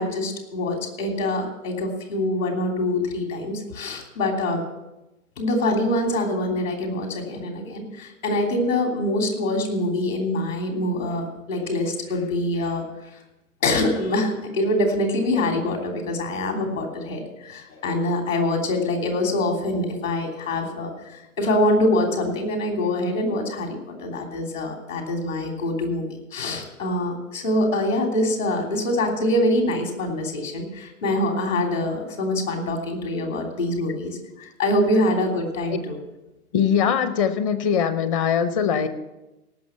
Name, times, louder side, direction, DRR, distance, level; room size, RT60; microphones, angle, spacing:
voice 1, 0.0-4.6 5.4-12.8 13.6-26.0 26.3-36.0, left 1 dB, 60° left, 3 dB, 3.3 m, -24 dB
voice 2, 36.5-38.9, left 7 dB, 25° left, 12 dB, 0.7 m, -21 dB
18.0 x 6.1 x 7.3 m, 1.0 s
figure-of-eight pair, 120°, 44 cm